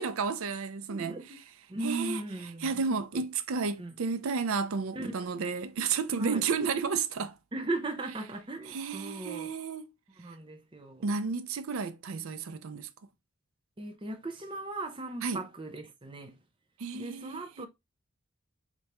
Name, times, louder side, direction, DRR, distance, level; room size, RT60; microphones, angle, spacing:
voice 1, 0.0-1.2 1.8-2.2 2.6-7.3 8.7-9.9 11.0-12.9 15.2-15.4 16.8-17.7, right 5 dB, 85° right, 0.5 m, -32 dB
voice 2, 0.9-1.4 1.7-3.0 3.8-3.9 4.9-5.1 6.2-6.5 7.5-9.5 10.2-11.1 13.8-16.4 16.9-17.7, right 2 dB, 25° right, 0.6 m, -37 dB
4.4 x 3.3 x 2.9 m
head